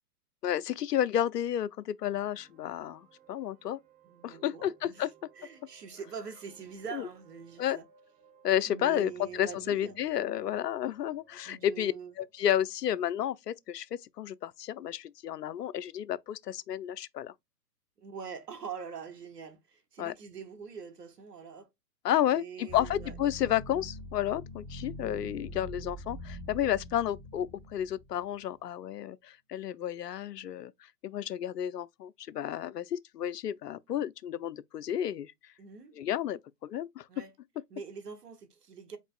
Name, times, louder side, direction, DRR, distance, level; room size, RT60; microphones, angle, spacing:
voice 1, 0.4-3.8 4.2-5.1 6.9-7.1 7.6-7.8 8.4-13.9 14.2-17.3 20.0-20.1 22.0-30.7 31.0-35.3 36.0-37.0, left 11 dB, 90° left, 0.6 m, -31 dB
sound 1, 2.0-13.7, right 7 dB, 20° right, 1.1 m, -62 dB
voice 2, 4.0-5.1 5.3-7.8 8.7-10.0 11.4-12.1 18.0-21.7 22.3-23.1 35.6-36.0 37.1-37.3 37.7-39.0, right 6 dB, 85° right, 1.3 m, -44 dB
sound 2, 22.7-28.4, equal, ahead, 0.4 m, -44 dB
5.2 x 4.2 x 2.4 m
hypercardioid pair, 130°, 47 cm